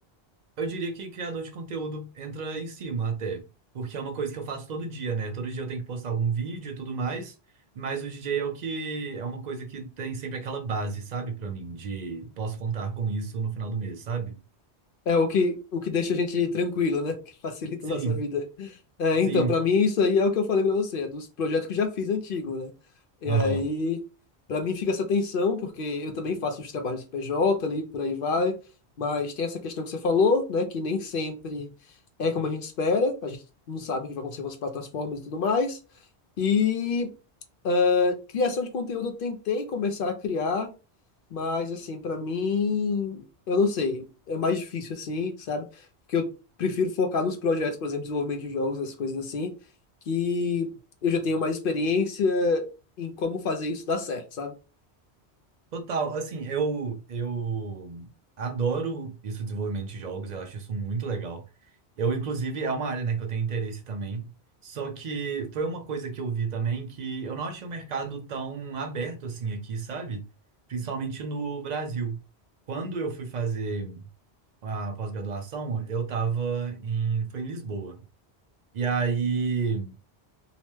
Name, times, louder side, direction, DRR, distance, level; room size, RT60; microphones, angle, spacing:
voice 1, 0.6-3.4 3.7-7.4 7.7-14.4 17.9-18.2 19.3-19.5 23.2-23.7 55.7-58.1 58.4-61.4 62.0-64.3 64.6-70.3 70.7-72.2 72.7-74.0 74.6-78.0 78.7-80.0, right 5 dB, 60° right, 0.4 m, -31 dB
voice 2, 15.1-17.2 17.4-22.7 23.2-24.0 24.5-28.5 29.0-31.7 32.2-33.4 33.7-35.8 36.4-37.1 37.6-40.7 41.3-45.7 46.1-46.3 46.6-49.5 50.1-50.7 51.0-52.7 53.0-54.5, left 4 dB, 60° left, 0.7 m, -26 dB
2.8 x 2.1 x 3.1 m
omnidirectional pair, 1.1 m